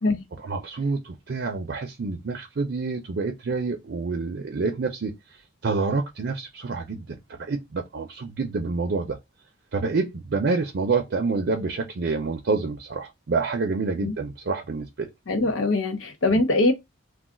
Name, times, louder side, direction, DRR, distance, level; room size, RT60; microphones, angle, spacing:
voice 1, 0.4-5.1 5.6-9.2 9.7-15.1 16.3-16.4, right 4 dB, 55° right, 0.5 m, -27 dB
voice 2, 15.3-16.7, left 2 dB, 75° left, 0.8 m, -22 dB
2.4 x 2.3 x 3.7 m
head